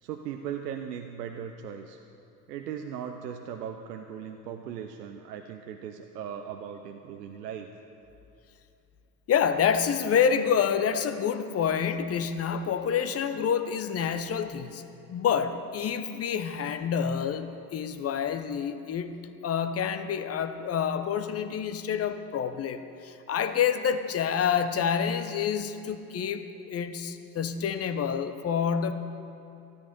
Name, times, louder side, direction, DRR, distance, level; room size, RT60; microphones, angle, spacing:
voice 1, 0.0-2.0 2.5-7.7, right 8 dB, 80° right, 5 dB, 0.8 m, -38 dB
voice 2, 9.3-14.8 15.1-28.9, left 7 dB, 30° left, 10 dB, 0.8 m, -28 dB
13.0 x 13.0 x 5.3 m, 2.9 s
hypercardioid pair, 75°, 48 cm